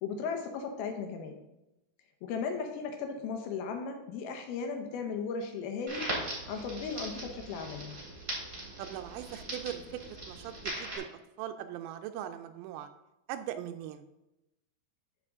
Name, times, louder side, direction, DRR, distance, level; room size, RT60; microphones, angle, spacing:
voice 1, 0.0-1.3 2.2-6.1 6.5-8.0, left 5 dB, 75° left, 5 dB, 2.3 m, -36 dB
Crackle, 5.9-11.0, right 1 dB, 20° right, 2.2 m, -40 dB
voice 2, 8.8-11.1 11.4-12.9 13.3-14.0, right 11 dB, 85° right, 9 dB, 2.9 m, -40 dB
11.0 x 5.1 x 3.6 m, 0.93 s
omnidirectional pair, 5.2 m